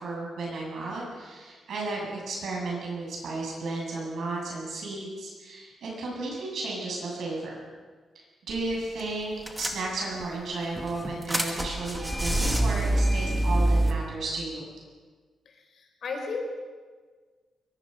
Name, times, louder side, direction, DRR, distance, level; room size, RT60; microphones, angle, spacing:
voice 1, 0.0-7.6 8.5-14.6, right 3 dB, 65° right, -2 dB, 7.9 m, -33 dB
sound 1, 8.5-8.7 9.0-9.1 9.5-10.3 10.8-13.9, right 1 dB, 5° right, 2.1 m, -26 dB
voice 2, 15.5-16.6, left 3 dB, 55° left, 2 dB, 4.3 m, -35 dB
23.5 x 23.0 x 5.7 m, 1.5 s
wide cardioid pair, 160°, 0 cm